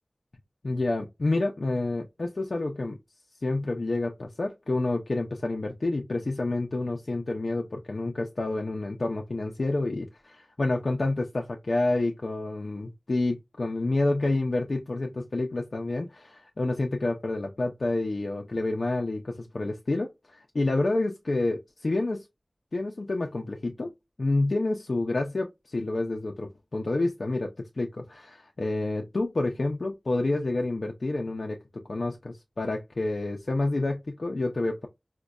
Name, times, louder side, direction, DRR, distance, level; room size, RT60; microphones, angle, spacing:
voice 1, 0.6-3.0 3.4-22.3 22.7-23.9 24.2-34.9, left 2 dB, 90° left, 0.4 m, -29 dB
5.0 x 2.1 x 2.2 m
wide cardioid pair, 50°, 0 cm